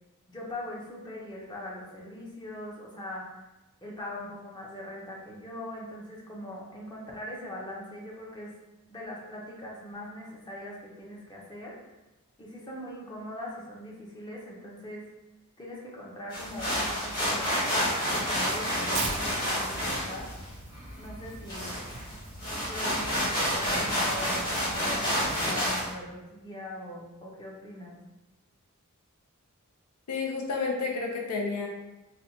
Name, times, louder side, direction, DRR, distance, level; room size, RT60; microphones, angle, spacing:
voice 1, 0.3-3.4 3.8-8.5 8.9-11.8 12.4-15.0 15.6-20.3 21.0-21.7 22.5-28.0, left 1 dB, 20° left, -3 dB, 0.6 m, -41 dB
sound 1, 16.3-25.9, equal, 40° left, 1.2 m, -29 dB
Tearing, 18.9-25.4, right 4 dB, 30° right, 0.3 m, -42 dB
voice 2, 30.1-31.7, left 4 dB, 85° left, 0 dB, 0.5 m, -30 dB
4.2 x 2.2 x 2.6 m, 1.0 s
head